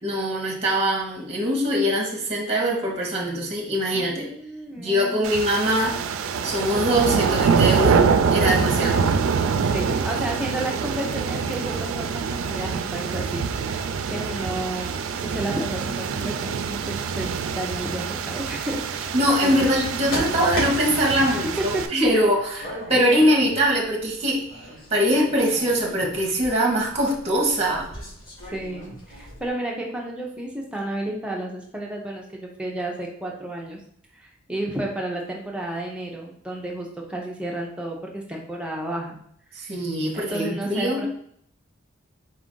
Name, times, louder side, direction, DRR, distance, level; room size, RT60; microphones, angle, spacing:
voice 1, 0.0-4.3 4.8-6.0 6.4-8.0 8.3-9.1 19.1-24.6 24.9-27.9 39.5-41.0, equal, 30° right, 0 dB, 0.9 m, -22 dB
voice 2, 3.9-5.4 9.6-19.1 19.4-19.6 21.2-21.4 21.7-21.8 22.6-22.7 28.5-33.8 34.1-39.2 40.1-41.1, right 1 dB, 5° right, -1 dB, 0.5 m, -32 dB
sound 1, 5.2-21.9, right 5 dB, 85° right, 0.3 m, -25 dB
sound 2, 17.6-29.5, equal, 85° left, 1.8 m, -39 dB
4.4 x 2.5 x 3.7 m, 0.66 s
head